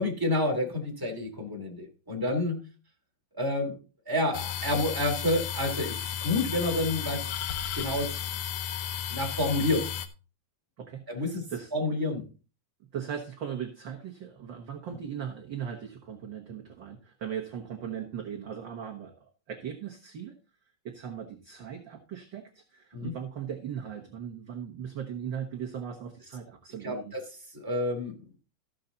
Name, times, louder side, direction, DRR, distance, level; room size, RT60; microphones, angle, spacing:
voice 1, 0.0-2.6 3.3-3.8 4.1-6.0 6.2-7.3 7.8-8.1 9.1-9.9 11.1-12.3 22.9-23.1 26.8-27.2 27.5-28.4, left 1 dB, 5° right, 0 dB, 2.5 m, -29 dB
sound 1, 4.3-10.1, left 10 dB, 70° left, 1.8 m, -34 dB
voice 2, 10.8-11.7 12.9-20.3 20.8-27.1, right 8 dB, 50° right, 1 dB, 1.5 m, -38 dB
14.0 x 7.1 x 4.0 m, 0.34 s
omnidirectional pair, 3.5 m